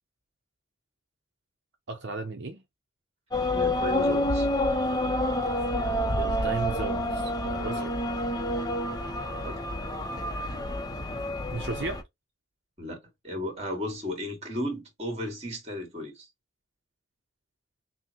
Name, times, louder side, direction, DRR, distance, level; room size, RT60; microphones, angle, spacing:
voice 1, 1.9-2.6 6.2-7.9 11.5-12.0, right 3 dB, 65° right, 0.7 m, -35 dB
sound 1, 3.3-12.0, left 1 dB, 20° left, 0.6 m, -28 dB
voice 2, 3.5-4.5 7.7-7.9 9.4-9.6 12.8-16.3, left 1 dB, 30° right, 2.0 m, -34 dB
6.0 x 2.1 x 2.9 m
head